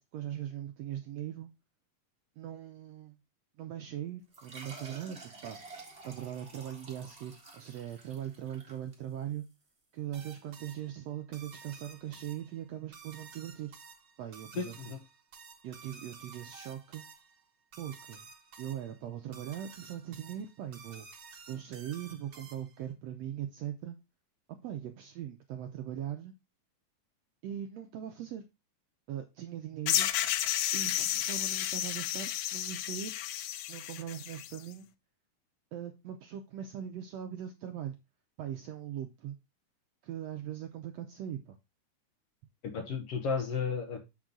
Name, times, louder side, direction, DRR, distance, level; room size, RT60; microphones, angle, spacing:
voice 1, 0.1-1.5 2.4-3.2 3.6-5.6 6.0-9.4 9.9-13.7 14.2-15.0 15.6-17.0 17.8-18.3 18.6-21.1 21.5-24.0 24.6-26.4 27.4-28.4 29.1-30.1 30.7-33.2 33.7-34.9 35.7-38.0 38.4-39.4 40.0-41.6, right 10 dB, 80° right, 6 dB, 1.5 m, -40 dB
sound 1, 4.3-9.5, right 3 dB, 30° right, 1.4 m, -50 dB
sound 2, 10.1-22.9, right 5 dB, 50° right, 1.4 m, -52 dB
voice 2, 14.6-15.0 42.7-44.0, left 5 dB, 65° left, 4 dB, 1.7 m, -33 dB
sound 3, 29.9-34.6, left 13 dB, 90° left, 2.2 m, -32 dB
7.4 x 5.5 x 3.7 m, 0.24 s
omnidirectional pair, 3.7 m